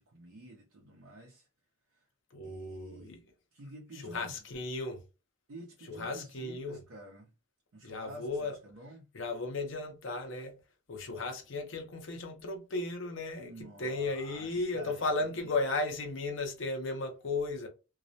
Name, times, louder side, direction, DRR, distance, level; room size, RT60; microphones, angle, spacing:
voice 1, 0.0-1.5 1.9-2.0 2.4-3.1 3.5-4.4 5.5-7.3 7.7-9.1 13.4-15.5, right 1 dB, 85° right, 0.6 m, -50 dB
voice 2, 2.3-3.2 4.0-5.0 5.9-6.8 7.8-8.6 9.1-10.6 10.9-17.7, left 3 dB, 60° left, 0.6 m, -35 dB
2.3 x 2.0 x 2.6 m
head